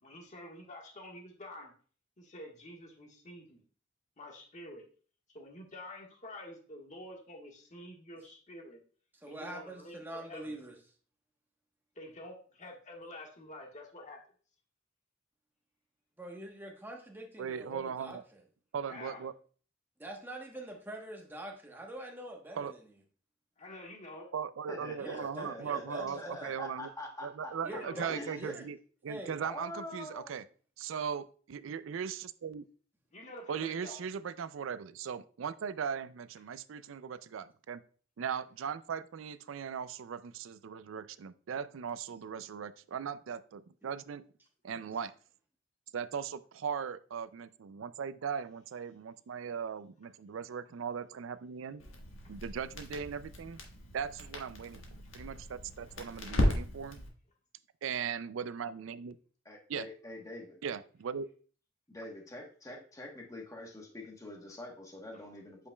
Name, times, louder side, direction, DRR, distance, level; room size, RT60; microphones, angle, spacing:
voice 1, 0.0-1.7 2.2-3.6 4.2-4.9 5.3-8.8 9.3-10.6 11.9-14.2 18.9-19.2 23.6-24.3 27.6-28.1 33.1-34.0 52.2-52.3, left 1 dB, 40° left, 1 dB, 1.4 m, -48 dB
voice 2, 9.2-10.8 16.2-18.4 20.0-22.9 25.0-26.5 27.6-28.7 29.1-29.4 43.8-43.9, right 1 dB, 10° right, 1 dB, 1.0 m, -44 dB
voice 3, 17.4-18.2 18.7-19.3 22.5-22.7 24.3-26.9 27.2-28.8 29.0-30.4 30.8-32.6 33.5-37.8 38.2-44.2 44.6-45.1 45.9-51.8 52.3-53.6 53.9-57.0 57.8-59.2 59.7-59.9 60.6-61.3, right 7 dB, 80° right, 15 dB, 0.4 m, -38 dB
voice 4, 24.7-27.5 28.1-28.4 29.4-30.3 59.4-60.6 61.9-65.7, left 1 dB, 15° left, 1 dB, 1.1 m, -45 dB
Crackle, 51.8-57.1, equal, 75° left, 1.4 m, -36 dB
8.3 x 5.1 x 2.2 m, 0.41 s
head